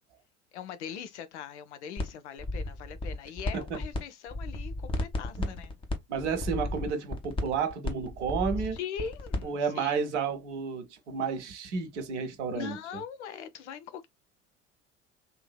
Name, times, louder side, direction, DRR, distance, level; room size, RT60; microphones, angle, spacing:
voice 1, 0.5-5.8 8.7-10.0 12.5-14.1, left 7 dB, 65° left, 0.7 m, -41 dB
sound 1, 2.0-2.1 2.4-4.0 4.3-9.5, left 2 dB, 15° left, 0.9 m, -33 dB
voice 2, 6.1-8.8 9.4-12.8, right 6 dB, 65° right, 1.1 m, -31 dB
3.7 x 2.7 x 2.2 m
figure-of-eight pair, 70°, 37 cm